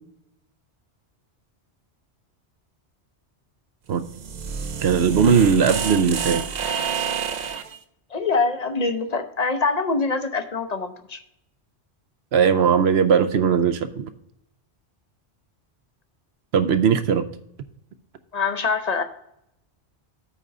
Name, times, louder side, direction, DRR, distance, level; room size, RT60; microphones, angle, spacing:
sound 1, 3.9-7.8, right 7 dB, 50° right, 0.6 m, -29 dB
voice 1, 4.8-6.4 6.9-7.0 12.3-14.1 16.5-17.3, right 6 dB, 70° right, 10 dB, 0.9 m, -19 dB
voice 2, 8.1-11.2 18.3-19.0, left 4 dB, 45° left, 8 dB, 0.7 m, -24 dB
8.7 x 3.7 x 6.6 m, 0.78 s
omnidirectional pair, 1.1 m